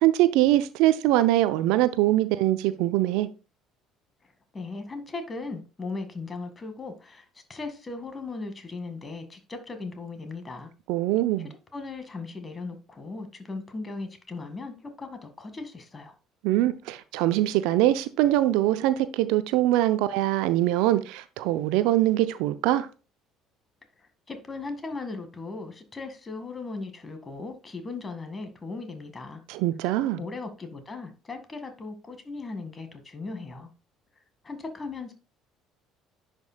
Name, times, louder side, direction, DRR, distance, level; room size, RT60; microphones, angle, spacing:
voice 1, 0.0-3.3 10.9-11.5 16.4-22.9 29.5-30.2, right 15 dB, 70° right, 0.5 m, -23 dB
voice 2, 4.5-10.7 11.4-16.1 24.0-29.4 30.2-33.7 34.4-35.1, left 3 dB, 30° left, 1.8 m, -38 dB
10.5 x 5.2 x 2.3 m
hypercardioid pair, 60°, 0 cm